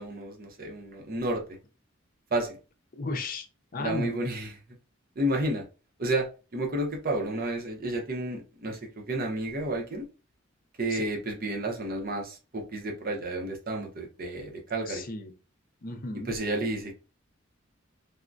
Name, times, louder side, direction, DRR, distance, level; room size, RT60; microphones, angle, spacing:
voice 1, 0.0-1.4 2.3-2.6 3.8-4.5 5.2-5.6 6.0-10.1 10.8-15.0 16.3-16.9, right 1 dB, 45° right, 1 dB, 0.7 m, -31 dB
voice 2, 2.9-3.5 3.7-4.2 10.9-11.1 14.9-15.3 15.8-16.3, left 3 dB, 45° left, 6 dB, 0.5 m, -34 dB
3.4 x 2.1 x 2.5 m, 0.33 s
head